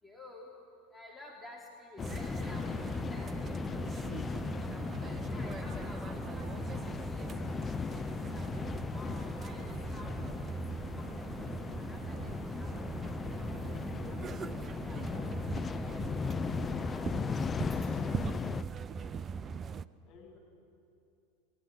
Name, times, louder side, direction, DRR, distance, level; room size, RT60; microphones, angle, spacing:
voice 1, 0.0-0.5 0.9-3.6 4.0-8.5 8.9-11.5 11.8-15.0 15.4-17.4 17.7-18.3, left 1 dB, ahead, -3 dB, 3.6 m, -53 dB
sound 1, 2.0-18.6, left 6 dB, 25° left, 0.4 m, -37 dB
sound 2, 2.0-19.8, right 6 dB, 25° right, 0.6 m, -40 dB
voice 2, 16.5-17.1 20.0-20.4, left 5 dB, 45° left, 0 dB, 7.0 m, -55 dB
28.0 x 21.5 x 6.1 m, 2.7 s
figure-of-eight pair, 85°, 0 cm